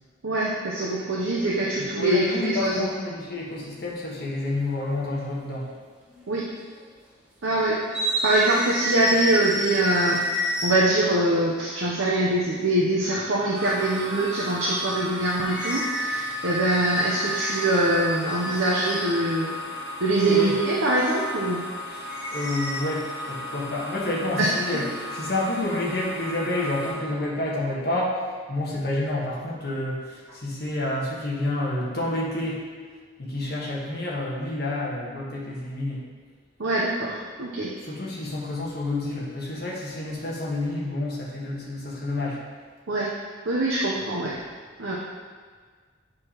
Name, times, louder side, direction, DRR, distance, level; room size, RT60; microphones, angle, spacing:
voice 1, 0.2-2.9 6.3-6.5 7.4-7.8 8.2-19.5 20.0-21.6 24.4-24.5 36.6-37.7 42.9-43.1 43.5-44.3 44.8-45.0, right 1 dB, 70° right, -5 dB, 0.7 m, -23 dB
voice 2, 1.8-5.7 20.3-20.5 21.9-22.0 22.3-24.9 25.1-32.6 33.2-36.1 37.8-42.4, left 2 dB, 50° left, -5 dB, 1.4 m, -29 dB
sound 1, 3.5-3.8 5.0-5.1 6.1-6.5 6.7-6.9 7.9-11.1 15.5-19.3 22.1-22.8, equal, 5° right, 0.9 m, -30 dB
sound 2, 13.5-26.9, left 1 dB, 50° right, 1.8 m, -36 dB
8.4 x 4.8 x 3.0 m, 1.5 s
head